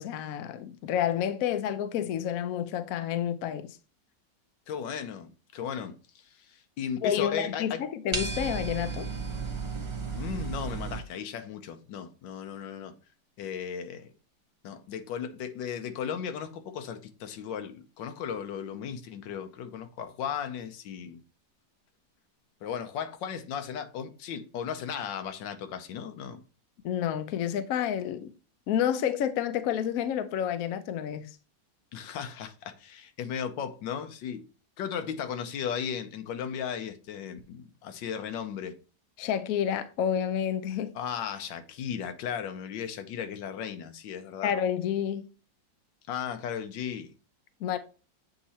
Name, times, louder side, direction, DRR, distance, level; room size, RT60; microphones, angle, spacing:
voice 1, 0.0-3.8 7.0-9.1 26.8-28.3 28.7-31.3 39.2-40.9 44.4-45.3 47.6-47.8, left 9 dB, 70° left, 0.8 m, -29 dB
voice 2, 4.7-7.8 10.1-12.9 13.4-14.1 14.6-21.2 22.6-26.4 31.9-34.4 34.8-38.8 40.9-44.5 46.1-47.1, left 8 dB, 90° left, 1.4 m, -36 dB
sound 1, 8.1-11.0, right 4 dB, 30° right, 0.5 m, -33 dB
8.4 x 2.9 x 4.1 m
omnidirectional pair, 1.9 m